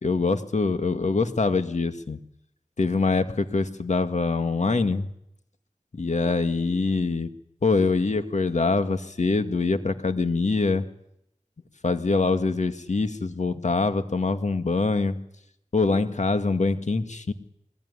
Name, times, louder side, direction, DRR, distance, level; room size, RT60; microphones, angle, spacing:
voice 1, 0.0-2.2 2.8-5.1 5.9-7.3 7.6-10.8 11.8-15.2 15.7-17.3, left 3 dB, 60° left, 8 dB, 2.1 m, -24 dB
22.5 x 20.5 x 9.8 m, 0.75 s
cardioid pair, 45°, 13 cm